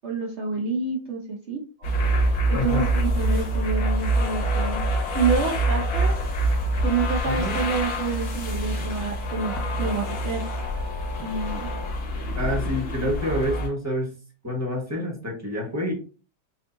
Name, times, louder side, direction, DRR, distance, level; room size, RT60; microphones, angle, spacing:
voice 1, 0.0-1.6 2.5-4.8 5.1-6.1 6.8-9.5 9.8-10.5 11.2-11.7, right 4 dB, 70° right, -1 dB, 0.6 m, -28 dB
sound 1, 1.8-13.7, right 1 dB, 80° left, 2.1 m, -25 dB
sound 2, 1.8-11.9, equal, 90° right, 2.0 m, -45 dB
voice 2, 2.5-2.9 7.2-7.6 12.3-14.1 14.4-15.9, left 1 dB, 10° right, 0 dB, 1.0 m, -27 dB
6.2 x 2.6 x 2.6 m, 0.36 s
omnidirectional pair, 2.1 m